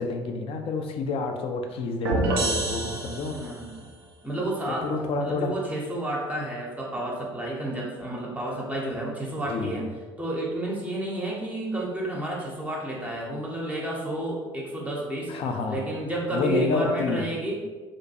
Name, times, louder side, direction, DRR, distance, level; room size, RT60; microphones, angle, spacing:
voice 1, 0.0-3.4 4.7-5.5 9.5-9.8 15.3-15.9 16.3-17.3, left 4 dB, 45° left, 4 dB, 0.4 m, -28 dB
sound 1, 2.0-3.7, right 2 dB, 75° right, 0.4 m, -27 dB
voice 2, 3.3-3.9 4.2-4.9 5.2-9.9 10.2-15.3 15.7-17.6, right 1 dB, 10° right, -3 dB, 0.6 m, -31 dB
2.5 x 2.1 x 2.7 m, 1.3 s
hypercardioid pair, 60°, 13 cm